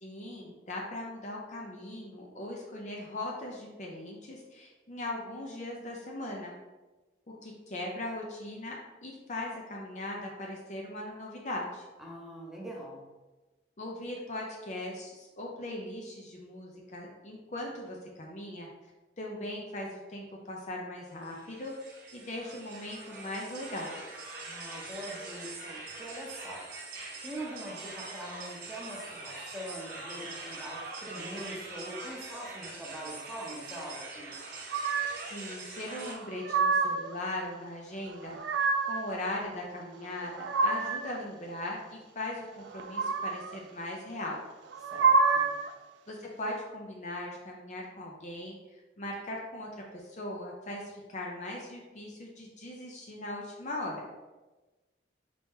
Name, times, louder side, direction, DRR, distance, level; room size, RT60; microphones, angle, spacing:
voice 1, 0.0-6.5 7.4-11.8 13.8-18.7 19.2-24.0 35.2-38.4 38.9-44.4 46.1-54.1, left 1 dB, 40° left, -1 dB, 0.6 m, -39 dB
voice 2, 12.0-13.0 24.4-26.6 27.2-34.4 44.9-45.5, right 1 dB, ahead, -4 dB, 0.8 m, -43 dB
sound 1, 21.1-36.1, right 3 dB, 50° right, 0.8 m, -43 dB
sound 2, 34.7-35.3 36.1-37.1 38.1-39.1 40.0-41.2 42.7-43.6 44.7-45.7, right 4 dB, 80° right, 0.4 m, -28 dB
4.2 x 2.9 x 3.6 m, 1.2 s
head